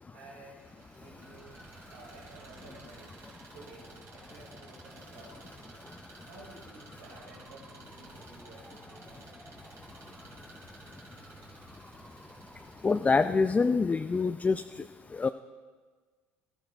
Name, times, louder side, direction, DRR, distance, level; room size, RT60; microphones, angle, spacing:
voice 1, 0.1-0.6 1.0-3.2 3.5-5.8 6.2-9.3, right 2 dB, 80° right, -3 dB, 2.7 m, -53 dB
Engine, 0.6-13.1, right 4 dB, 55° right, 2.9 m, -55 dB
sound 1, 1.0-13.1, right 1 dB, ahead, 1.8 m, -54 dB
voice 2, 12.8-14.6 15.1-15.3, left 4 dB, 25° left, 9 dB, 0.4 m, -25 dB
19.0 x 13.5 x 2.6 m, 1.5 s
hypercardioid pair, 65°, 6 cm